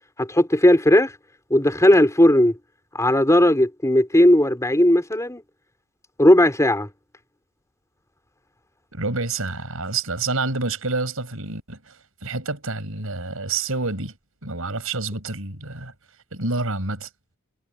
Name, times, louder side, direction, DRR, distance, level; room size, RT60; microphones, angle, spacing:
voice 1, 0.2-1.1 1.5-2.5 3.0-5.4 6.2-6.9, left 1 dB, 15° left, 4.2 m, -16 dB
voice 2, 8.9-14.1 14.4-15.9 16.3-17.1, right 3 dB, 70° right, 6.9 m, -28 dB
head